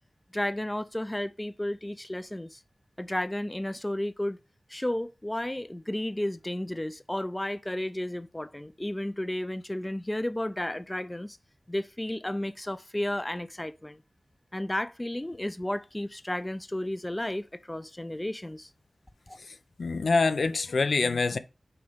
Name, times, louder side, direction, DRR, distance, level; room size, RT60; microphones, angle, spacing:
voice 1, 0.3-2.6 3.0-4.4 4.7-11.4 11.7-14.0 14.5-18.7 19.3-19.4, left 1 dB, 15° left, 0.4 m, -33 dB
voice 2, 19.4-21.4, left 4 dB, 80° left, 0.6 m, -26 dB
6.8 x 4.3 x 5.1 m
wide cardioid pair, 70°, 0 cm